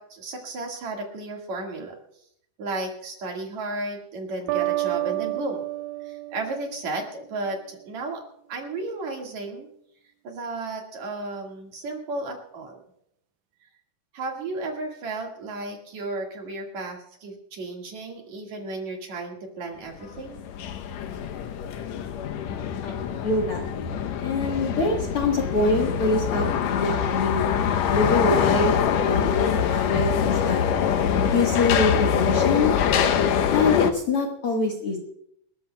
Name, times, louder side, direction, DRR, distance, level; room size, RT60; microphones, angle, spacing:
voice 1, 0.0-2.0 2.6-5.6 6.0-8.2 8.5-9.7 10.2-12.8 14.1-20.4, right 2 dB, 55° right, 1 dB, 2.9 m, -33 dB
sound 1, 4.5-7.3, right 19 dB, 85° right, 1.7 m, -29 dB
sound 2, 20.0-33.9, left 8 dB, 85° left, 1.5 m, -24 dB
voice 2, 22.4-23.6 24.2-27.5 27.9-28.7 29.0-30.6 31.3-32.7 33.5-35.0, left 3 dB, 55° left, 0 dB, 1.8 m, -25 dB
28.0 x 13.5 x 2.3 m, 0.73 s
omnidirectional pair, 4.2 m